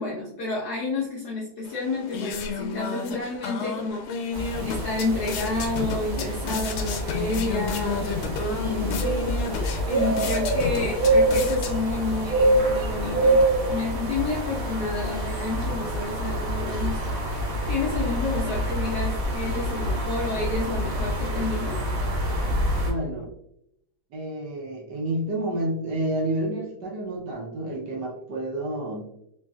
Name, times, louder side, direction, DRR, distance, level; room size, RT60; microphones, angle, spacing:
voice 1, 0.0-9.4 9.9-13.4 13.7-21.8, left 3 dB, 75° left, -3 dB, 0.9 m, -30 dB
sound 1, 1.7-12.2, left 5 dB, 90° left, 1.5 m, -33 dB
sound 2, 4.3-22.9, right 1 dB, 85° right, 0.6 m, -26 dB
voice 2, 22.8-23.2 24.1-29.1, right 1 dB, 65° right, -3 dB, 1.2 m, -29 dB
3.3 x 3.0 x 2.3 m, 0.78 s
omnidirectional pair, 2.3 m